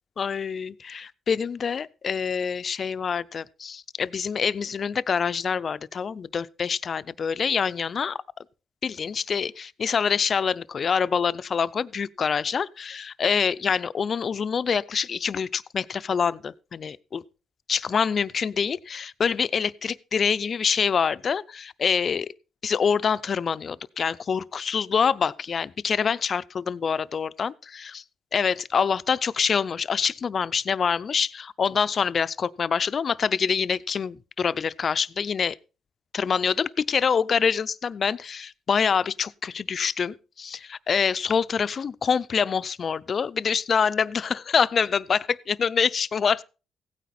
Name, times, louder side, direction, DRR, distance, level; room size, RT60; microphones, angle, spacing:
voice 1, 0.2-8.2 8.8-17.2 17.7-22.3 22.6-28.0 28.3-35.6 36.1-46.4, left 6 dB, 45° left, 0.5 m, -26 dB
16.0 x 9.3 x 4.3 m
cardioid pair, 90°, 0 cm